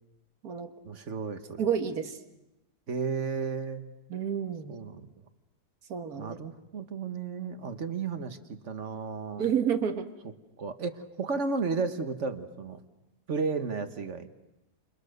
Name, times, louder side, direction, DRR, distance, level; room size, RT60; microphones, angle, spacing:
voice 1, 0.8-1.6 2.9-3.8 4.7-5.0 6.2-9.5 10.6-12.8 13.3-14.3, right 4 dB, 50° right, 9 dB, 1.6 m, -33 dB
voice 2, 1.6-2.2 4.1-4.8 5.9-6.4 9.4-10.1, right 8 dB, 65° right, 8 dB, 2.0 m, -29 dB
29.0 x 28.5 x 6.7 m, 0.94 s
omnidirectional pair, 1.7 m